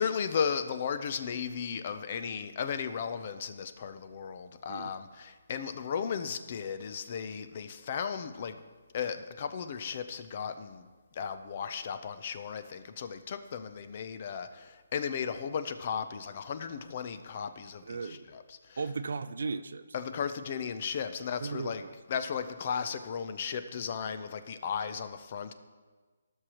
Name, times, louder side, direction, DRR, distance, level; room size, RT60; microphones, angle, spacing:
voice 1, 0.0-8.6 8.9-10.9 11.1-18.8 19.9-21.8 22.1-25.5, left 7 dB, 35° left, 10 dB, 0.5 m, -35 dB
voice 2, 17.8-18.3 18.8-19.8 21.4-21.9, right 4 dB, 65° right, 13 dB, 0.4 m, -36 dB
17.0 x 6.3 x 3.0 m, 1.4 s
hypercardioid pair, 170°, 0 cm